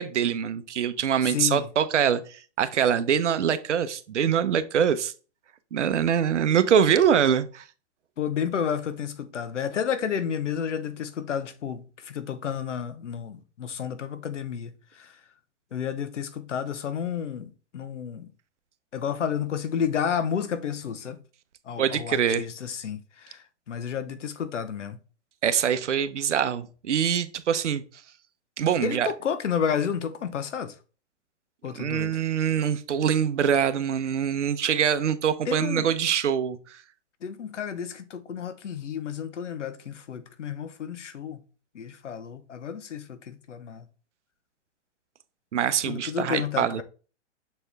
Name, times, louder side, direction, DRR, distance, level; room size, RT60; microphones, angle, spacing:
voice 1, 0.0-5.1 5.7-7.6 21.8-22.4 25.4-27.8 28.6-29.1 31.8-36.8 45.5-46.8, right 8 dB, 85° right, 0.9 m, -24 dB
voice 2, 1.3-1.7 8.2-15.2 15.7-18.3 18.9-21.2 21.7-25.0 28.8-30.7 31.6-32.2 35.5-35.9 37.2-41.4 41.7-43.8 45.8-46.8, left 8 dB, 90° left, 1.0 m, -31 dB
6.8 x 4.3 x 3.4 m
hypercardioid pair, 140°, 35 cm